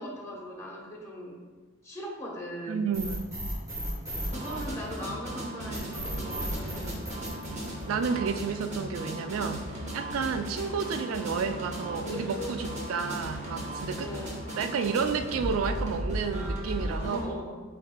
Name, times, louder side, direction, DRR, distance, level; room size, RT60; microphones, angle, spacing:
voice 1, 0.0-1.4 1.8-2.8 4.3-7.1 13.9-14.4 17.0-17.6, equal, 15° left, -2 dB, 0.8 m, -39 dB
voice 2, 2.7-3.3 7.9-9.6 9.9-14.1 14.6-17.2, right 5 dB, 85° right, 9 dB, 0.3 m, -31 dB
sound 1, 2.9-5.2 5.7-8.2, equal, 15° right, 1.2 m, -35 dB
sound 2, 4.3-17.3, right 1 dB, 35° right, 0.8 m, -36 dB
sound 3, 9.8-15.6, left 3 dB, 65° left, 0.4 m, -45 dB
7.2 x 2.7 x 2.2 m, 1.4 s
head